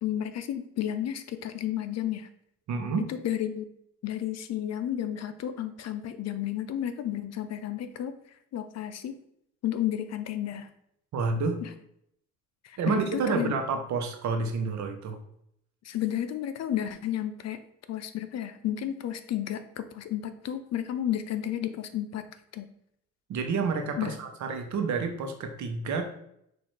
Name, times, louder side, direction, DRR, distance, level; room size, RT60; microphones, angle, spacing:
voice 1, 0.0-2.3 3.1-3.7 4.0-8.1 8.5-9.2 9.6-10.7 11.6-11.7 12.6-13.5 15.8-17.6 17.9-22.2 22.5-22.7 24.0-24.1, left 11 dB, 60° left, 10 dB, 0.5 m, -32 dB
voice 2, 2.7-3.0 11.1-11.6 12.8-15.2 23.3-26.0, right 4 dB, 70° right, 5 dB, 0.9 m, -29 dB
6.0 x 2.6 x 3.2 m, 0.74 s
cardioid pair, 90°, 30 cm